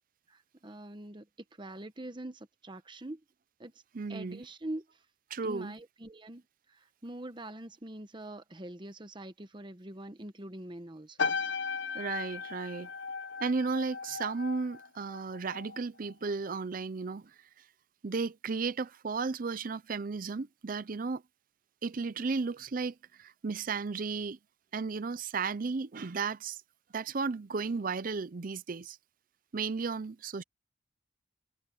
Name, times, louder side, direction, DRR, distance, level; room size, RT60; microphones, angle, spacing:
voice 1, 0.3-1.3 1.6-3.2 3.6-3.7 4.1-4.8 5.4-6.4 6.7-11.4, right 1 dB, 25° right, 1.0 m, -44 dB
voice 2, 3.9-4.4 5.3-5.7 11.9-12.9 13.4-17.3 18.0-21.2 21.8-24.4 24.7-26.6 26.9-29.0 29.5-30.4, right 4 dB, 45° right, 0.5 m, -34 dB
sound 1, 11.2-15.8 16.1-16.5, left 5 dB, 75° left, 1.0 m, -36 dB
head